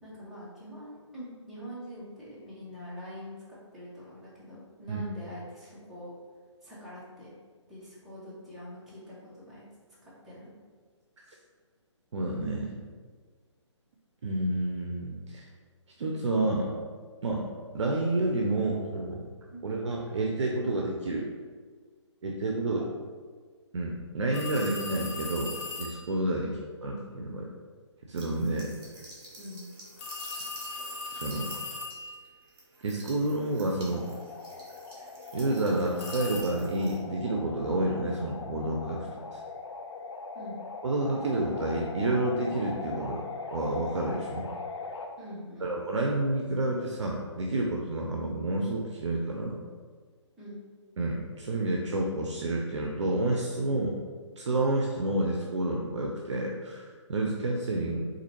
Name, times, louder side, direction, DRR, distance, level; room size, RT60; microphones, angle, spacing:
voice 1, 0.0-6.1 6.6-7.3 7.7-9.7 10.0-10.6 19.5-19.6 22.7-22.9 26.4-26.5 29.4-29.6 40.3-40.6 45.2-45.8 50.4-50.6, equal, ahead, -10 dB, 0.9 m, -44 dB
voice 2, 12.1-12.7 14.2-15.5 16.0-16.7 17.2-17.5 17.7-19.2 19.6-21.3 22.2-22.8 23.7-25.5 25.8-26.5 26.8-27.5 28.1-28.7 31.1-31.5 32.8-34.1 35.3-39.4 40.8-44.5 45.6-49.6 51.0-53.9 54.4-58.1, right 2 dB, 70° right, -1 dB, 0.5 m, -29 dB
sound 1, 24.3-26.1 30.0-32.3 36.0-36.4, left 3 dB, 15° left, 0.4 m, -38 dB
sound 2, 28.1-37.0, right 2 dB, 50° right, 1.1 m, -50 dB
sound 3, 33.9-45.1, left 4 dB, 70° left, 0.5 m, -41 dB
4.0 x 2.5 x 3.0 m, 1.5 s
figure-of-eight pair, 140°, 16 cm